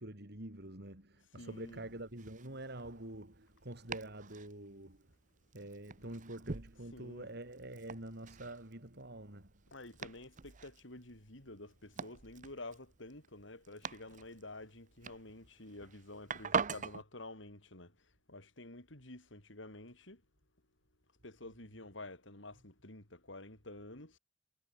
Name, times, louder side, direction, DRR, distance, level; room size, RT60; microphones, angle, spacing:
voice 1, 0.0-5.1 5.5-9.5, right 1 dB, 60° right, 4.4 m, -47 dB
voice 2, 1.4-1.8 6.9-7.3 9.7-20.2 21.2-24.2, left 2 dB, 75° left, 4.9 m, -50 dB
Domestic sounds home sounds, 1.5-17.0, right 5 dB, 45° right, 0.8 m, -45 dB
head